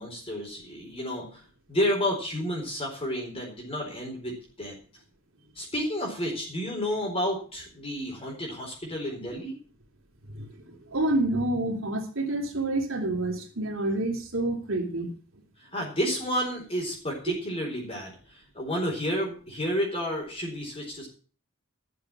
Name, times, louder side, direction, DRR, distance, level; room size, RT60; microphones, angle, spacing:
voice 1, 0.0-1.4 1.7-4.7 5.6-9.6 15.6-21.1, equal, 25° left, -1 dB, 4.2 m, -31 dB
voice 2, 10.3-15.1, right 2 dB, 65° right, 2 dB, 3.0 m, -28 dB
12.5 x 6.9 x 7.5 m, 0.40 s
head